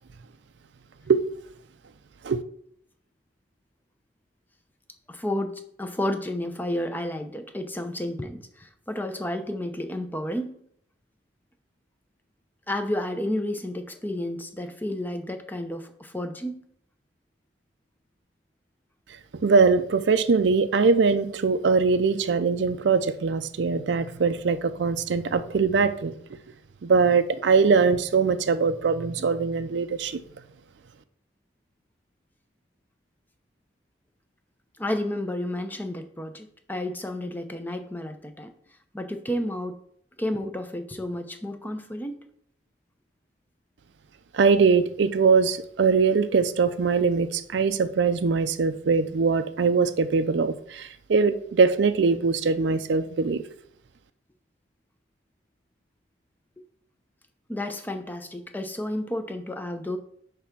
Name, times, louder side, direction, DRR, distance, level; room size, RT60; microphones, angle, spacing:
voice 1, 5.1-10.6 12.7-16.6 34.8-38.5 38.9-39.8 40.2-42.2 57.5-60.0, left 1 dB, 10° left, 7 dB, 0.6 m, -31 dB
voice 2, 19.1-26.1 26.8-30.2 44.3-53.4, right 5 dB, 65° right, 9 dB, 0.4 m, -22 dB
8.4 x 3.4 x 5.9 m, 0.67 s
head